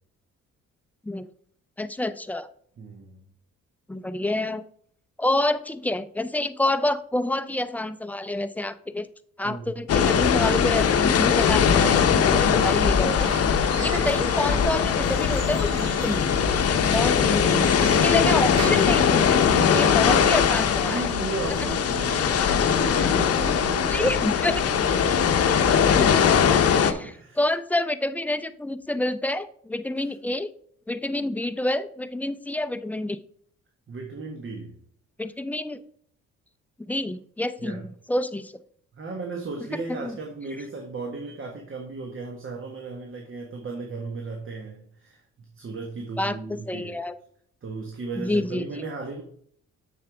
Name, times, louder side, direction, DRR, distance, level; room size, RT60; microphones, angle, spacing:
voice 1, 1.8-2.5 3.9-4.6 5.2-9.1 9.4-13.3 13.8-16.6 16.9-21.1 23.9-24.6 25.7-30.5 30.9-33.2 35.2-35.8 36.9-38.5 39.9-40.1 46.2-47.1 48.2-48.7, left 1 dB, 5° left, 11 dB, 0.5 m, -28 dB
voice 2, 2.8-3.2 9.4-9.7 20.1-20.5 20.8-22.4 22.7-24.1 24.7-25.4 27.0-27.4 33.9-34.7 37.6-37.8 38.9-45.2 45.5-47.0 47.6-49.2, right 3 dB, 45° right, 2 dB, 1.4 m, -35 dB
sound 1, 9.9-26.9, left 7 dB, 50° left, 0.8 m, -21 dB
Squeak / Wood, 12.9-19.8, right 4 dB, 60° right, 1.4 m, -38 dB
7.3 x 6.9 x 3.4 m, 0.62 s
cardioid pair, 90°, 30 cm